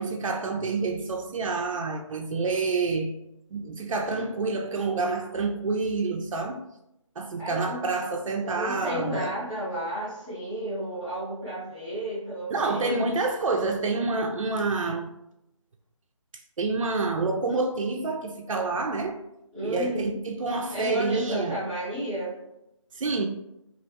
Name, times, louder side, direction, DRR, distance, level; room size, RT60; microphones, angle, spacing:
voice 1, 0.0-3.2 3.5-6.6 7.2-9.4 12.5-15.1 16.6-19.2 19.6-21.6 22.9-23.3, right 3 dB, 75° right, 0.4 m, -28 dB
voice 2, 7.4-7.8 8.4-13.1 19.5-20.2 20.7-22.3, right 1 dB, 10° left, 0.7 m, -32 dB
3.1 x 2.4 x 2.7 m
figure-of-eight pair, 160°, 17 cm